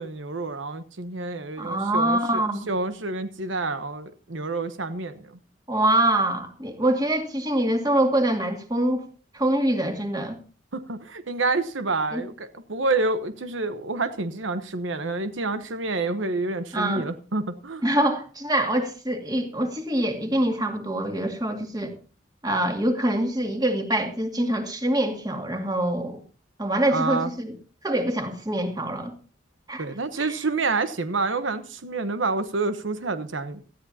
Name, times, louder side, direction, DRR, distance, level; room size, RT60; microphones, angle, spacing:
voice 1, 0.0-5.3 10.7-17.8 26.9-27.3 29.8-33.6, right 3 dB, 80° right, 1.0 m, -28 dB
voice 2, 1.6-2.7 5.7-9.1 9.3-10.4 12.1-12.2 16.7-17.1 17.8-21.9 22.4-26.2 26.6-27.5 27.8-29.1 29.7-29.9 30.2-30.4, right 1 dB, 20° right, 2.3 m, -24 dB
18.5 x 14.0 x 2.8 m
head